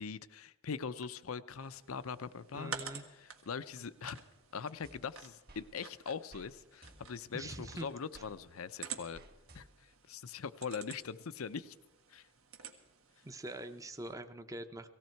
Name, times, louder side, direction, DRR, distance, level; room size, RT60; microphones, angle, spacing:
voice 1, 0.0-2.7 3.1-4.2 4.5-9.2 9.5-9.6 10.1-11.7 12.1-12.2, left 6 dB, 80° left, 14 dB, 0.6 m, -42 dB
sound 1, 1.6-14.1, right 6 dB, 75° right, 1.7 m, -51 dB
voice 2, 2.5-3.0 7.3-7.9 13.2-14.9, right 1 dB, 15° right, 9 dB, 0.7 m, -44 dB
sound 2, 4.8-5.7 6.3-6.5 6.8-8.3 9.1-10.0, right 1 dB, 45° right, 1.9 m, -58 dB
18.0 x 16.0 x 4.5 m, 1.0 s
head